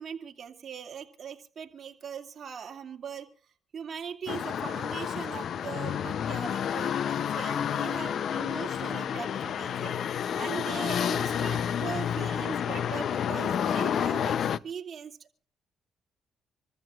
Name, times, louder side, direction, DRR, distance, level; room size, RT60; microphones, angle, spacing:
voice 1, 0.0-3.3 3.7-15.3, right 7 dB, 50° right, 4 dB, 2.4 m, -40 dB
sound 1, 4.3-14.6, left 8 dB, 65° left, 0.6 m, -30 dB
27.0 x 14.5 x 2.4 m, 0.41 s
cardioid pair, 90°, 0 cm